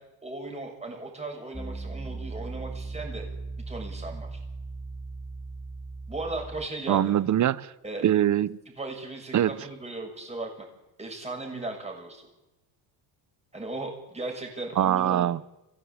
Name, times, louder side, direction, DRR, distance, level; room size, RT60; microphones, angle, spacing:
voice 1, 0.2-3.2 3.7-4.4 6.1-7.1 7.8-8.1 8.8-10.7 11.0-12.3 13.5-15.3, right 2 dB, 15° right, 1 dB, 7.0 m, -37 dB
Piano, 1.5-6.7, right 3 dB, 5° left, 1.3 m, -38 dB
voice 2, 6.9-7.7 8.0-8.6 9.3-9.5 14.8-15.5, right 11 dB, 40° right, 18 dB, 0.9 m, -23 dB
24.5 x 16.0 x 8.9 m, 1.0 s
cardioid pair, 115°, 46 cm